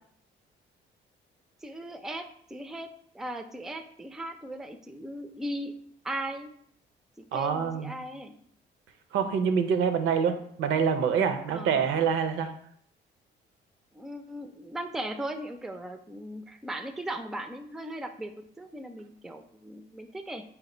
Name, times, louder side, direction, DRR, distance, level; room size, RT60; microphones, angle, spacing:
voice 1, 1.6-5.7 6.0-6.5 7.2-8.3 11.5-12.1 13.9-20.4, right 1 dB, ahead, 8 dB, 0.3 m, -38 dB
voice 2, 7.3-8.0 9.1-12.5, right 6 dB, 80° right, 8 dB, 0.5 m, -26 dB
4.0 x 2.1 x 4.2 m, 0.64 s
cardioid pair, 90°, 20 cm